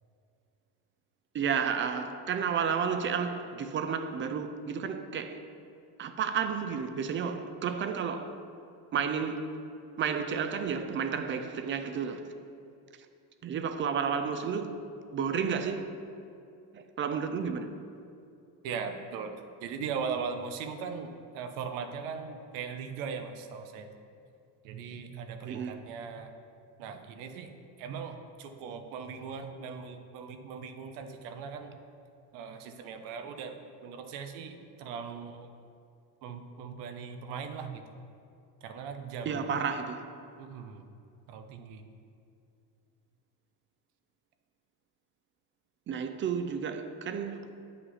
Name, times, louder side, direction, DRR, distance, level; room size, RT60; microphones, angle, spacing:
voice 1, 1.3-5.4 6.0-8.4 8.9-9.5 10.0-12.3 13.4-14.8 15.1-15.9 16.7-17.7 25.4-25.8 39.2-40.1 45.9-47.5, right 6 dB, 30° right, 0.4 m, -31 dB
voice 2, 18.6-19.3 19.6-21.1 21.3-23.9 24.6-26.3 26.8-27.5 27.8-31.7 32.3-35.5 36.2-37.8 38.6-39.5 40.4-40.8 41.3-41.8, right 6 dB, 90° right, 0.9 m, -39 dB
9.4 x 5.6 x 4.1 m
cardioid pair, 135°, 44 cm